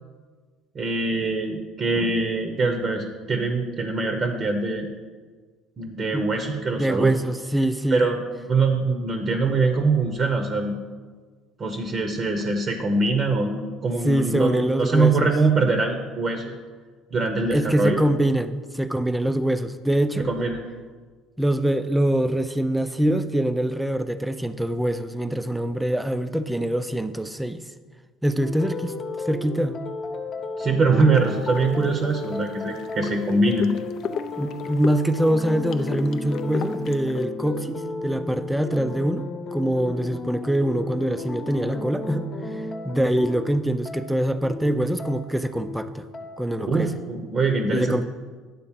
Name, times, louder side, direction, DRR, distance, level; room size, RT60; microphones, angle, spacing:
voice 1, 0.7-4.9 5.8-7.1 7.9-8.2 8.5-10.8 11.6-16.6 17.1-18.0 20.2-20.6 30.6-33.7 46.7-48.0, right 3 dB, 35° right, 5 dB, 0.7 m, -23 dB
voice 2, 6.8-8.0 14.0-15.3 17.5-20.3 21.4-27.6 28.2-28.9 29.3-29.8 34.4-42.3 42.8-46.1 46.4-46.9 47.7-48.0, right 1 dB, 5° right, 11 dB, 0.4 m, -24 dB
sound 1, 28.4-46.7, left 3 dB, 40° left, 1.0 m, -34 dB
sound 2, 31.2-37.3, left 6 dB, 55° left, 0.5 m, -37 dB
9.8 x 3.9 x 7.3 m, 1.5 s
cardioid pair, 125°, 0 cm